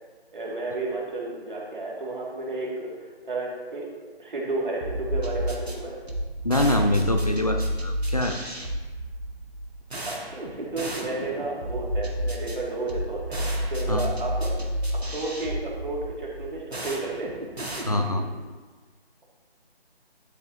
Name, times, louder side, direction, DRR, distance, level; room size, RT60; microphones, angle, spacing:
voice 1, 0.3-2.9 3.2-6.0 10.1-13.5 13.7-14.7 15.0-17.3, right 2 dB, 50° right, -4 dB, 2.5 m, -32 dB
sound 1, 4.8-18.4, equal, 80° right, 1.8 m, -31 dB
voice 2, 6.4-8.6 13.9-14.0 17.8-18.2, left 1 dB, 35° left, 5 dB, 0.5 m, -25 dB
12.0 x 6.9 x 2.9 m, 1.4 s
figure-of-eight pair, 155°, 31 cm